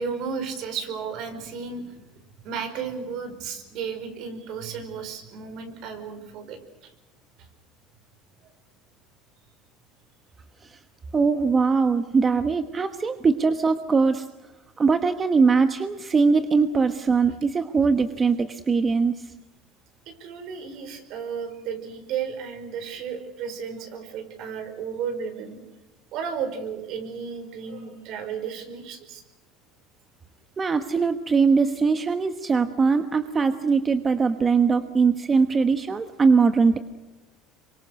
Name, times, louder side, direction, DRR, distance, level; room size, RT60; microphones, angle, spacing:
voice 1, 0.0-6.9 7.4-7.5 20.0-25.6 26.1-29.2, right 6 dB, 60° right, 8 dB, 4.9 m, -34 dB
voice 2, 11.1-14.3 14.8-19.3 30.6-36.8, right 5 dB, 25° right, 9 dB, 1.1 m, -21 dB
27.0 x 24.0 x 6.5 m, 1.1 s
supercardioid pair, 125°, 0 cm